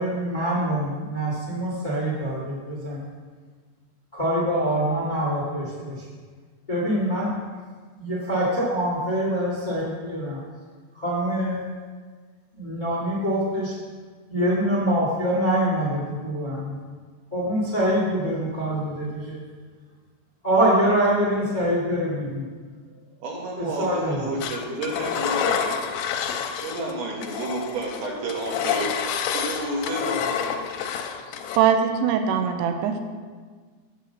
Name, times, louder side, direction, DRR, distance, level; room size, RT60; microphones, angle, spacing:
voice 1, 0.0-3.0 4.1-6.0 6.7-7.3 8.0-10.4 10.9-11.6 12.5-13.7 14.3-16.7 17.3-19.4 20.4-22.5 23.6-24.2, right 1 dB, 25° left, -6 dB, 1.0 m, -24 dB
voice 2, 23.2-25.8 26.6-29.0 29.3-30.2, right 2 dB, 70° right, -1 dB, 3.3 m, -30 dB
Engine, 24.4-26.9 27.2-31.6, left 8 dB, 90° left, 2.9 m, -28 dB
voice 3, 31.6-33.0, right 8 dB, 85° right, 6 dB, 2.8 m, -21 dB
8.4 x 6.4 x 7.1 m, 1.5 s
omnidirectional pair, 5.1 m